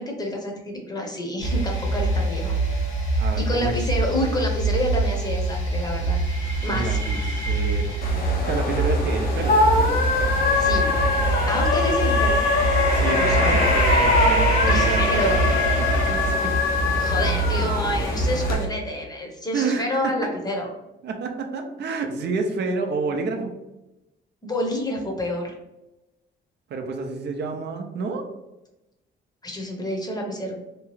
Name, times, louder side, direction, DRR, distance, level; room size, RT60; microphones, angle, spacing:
voice 1, 0.0-2.6 3.4-6.2 6.6-7.0 10.6-10.9 11.4-12.4 13.1-13.6 14.7-15.4 17.0-20.7 24.4-25.5 29.4-30.6, left 1 dB, 20° left, 0 dB, 0.8 m, -28 dB
sound 1, 1.4-18.7, right 2 dB, 80° left, 1.1 m, -24 dB
voice 2, 3.2-3.8 6.7-8.0 8.4-9.8 12.8-15.5 15.8-16.5 19.5-19.9 21.0-23.5 26.7-28.2, right 4 dB, 60° right, 4 dB, 0.5 m, -29 dB
sound 2, 8.0-18.5, left 3 dB, 50° left, 0.6 m, -23 dB
2.8 x 2.3 x 3.0 m, 0.97 s
cardioid pair, 90°, 20 cm